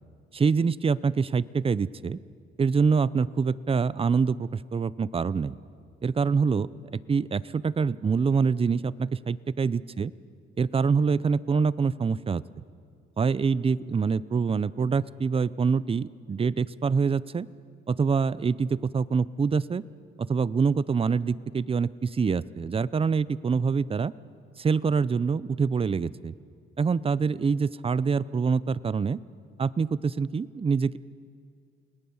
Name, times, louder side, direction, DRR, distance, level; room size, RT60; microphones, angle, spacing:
voice 1, 0.3-2.2 2.6-5.5 6.0-10.1 10.6-12.4 13.2-17.5 17.9-19.8 20.2-24.1 24.6-26.3 26.8-29.2 29.6-31.0, right 5 dB, 30° right, 19 dB, 0.6 m, -25 dB
29.5 x 19.5 x 7.2 m, 2.3 s
cardioid pair, 90°, 20 cm